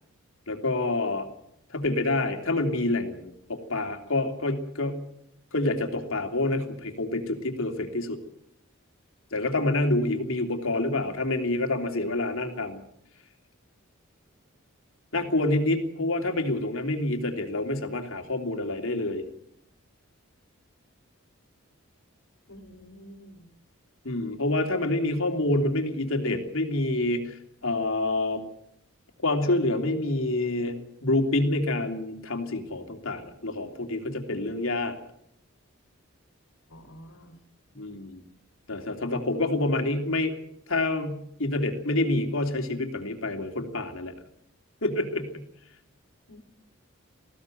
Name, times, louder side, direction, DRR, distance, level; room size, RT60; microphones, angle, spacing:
voice 1, 0.5-1.3 1.7-5.0 5.5-8.2 9.3-12.8 15.1-19.2 24.0-28.4 29.2-34.9 37.7-38.2 38.7-40.3 40.7-44.1 44.8-45.4, left 2 dB, 70° left, 4 dB, 3.2 m, -27 dB
voice 2, 22.5-23.5 36.7-37.4 46.3-46.4, equal, 90° left, 4 dB, 3.4 m, -48 dB
20.5 x 16.0 x 9.3 m, 0.75 s
head